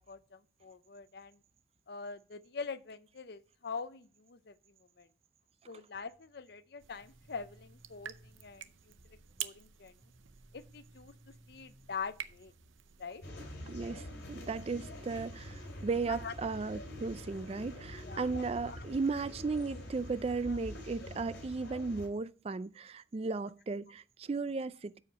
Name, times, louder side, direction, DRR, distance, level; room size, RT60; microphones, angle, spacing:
voice 1, 0.0-1.4 1.9-4.5 5.0-5.1 5.7-8.9 9.4-9.9 10.5-12.5 13.0-13.2 16.1-16.3 18.0-18.9, left 5 dB, 60° left, 0.6 m, -44 dB
sound 1, 5.9-12.8, right 1 dB, 10° right, 1.0 m, -63 dB
sound 2, 6.8-13.3, right 11 dB, 90° right, 0.6 m, -48 dB
sound 3, 13.2-22.1, left 1 dB, 80° left, 3.3 m, -46 dB
voice 2, 13.7-25.0, right 4 dB, 30° right, 0.4 m, -36 dB
12.5 x 4.8 x 4.0 m
head